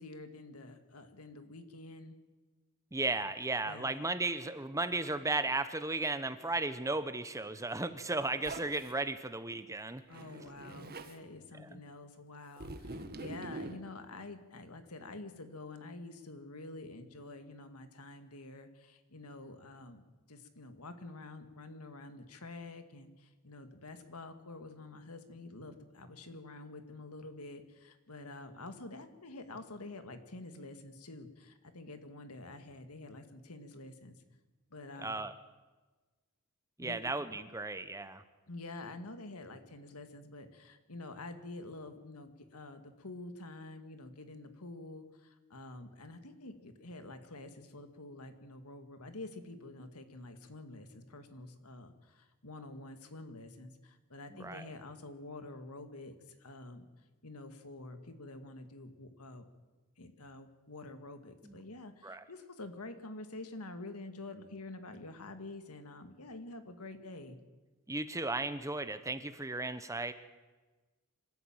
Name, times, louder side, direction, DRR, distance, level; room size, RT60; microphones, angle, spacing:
voice 1, 0.0-2.1 3.6-4.1 10.1-34.2 34.7-35.1 36.8-37.0 38.5-56.9 57.2-59.5 60.0-67.4, left 2 dB, 80° left, 8 dB, 2.2 m, -48 dB
voice 2, 2.9-10.0 11.5-11.8 35.0-35.3 36.8-38.2 54.3-54.7 61.4-61.5 62.0-62.2 67.9-70.1, right 2 dB, 15° right, 11 dB, 1.0 m, -35 dB
Zipper (clothing), 8.4-8.9 10.1-11.1 12.6-13.8, right 2 dB, 45° right, 1.7 m, -44 dB
25.5 x 14.0 x 9.0 m, 1.3 s
head